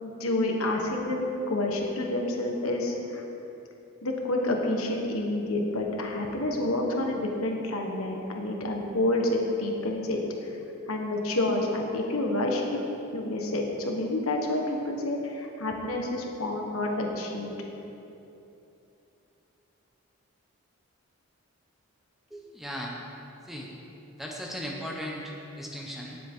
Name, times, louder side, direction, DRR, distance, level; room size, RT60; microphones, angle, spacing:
voice 1, 0.0-3.2 4.0-10.2 10.9-12.6 13.1-17.5, left 1 dB, 85° left, 1 dB, 1.5 m, -29 dB
voice 2, 22.3-23.0 23.4-23.7 24.2-26.2, equal, ahead, -2 dB, 1.1 m, -37 dB
18.5 x 7.6 x 3.8 m, 2.9 s
head